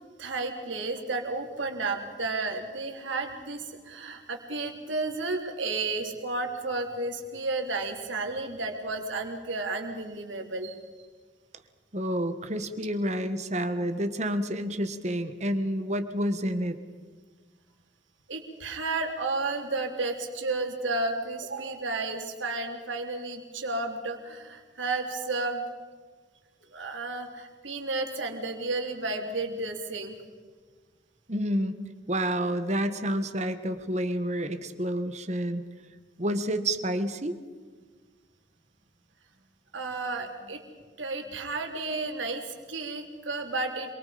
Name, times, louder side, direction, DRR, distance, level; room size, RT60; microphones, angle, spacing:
voice 1, 0.2-10.8 18.3-25.6 26.7-30.2 39.7-40.6 41.0-43.9, right 3 dB, 85° right, 3 dB, 3.5 m, -32 dB
voice 2, 11.9-16.7 31.3-31.7 32.1-35.6 36.2-37.4, equal, 35° right, 9 dB, 1.6 m, -29 dB
27.0 x 24.0 x 5.2 m, 1.5 s
head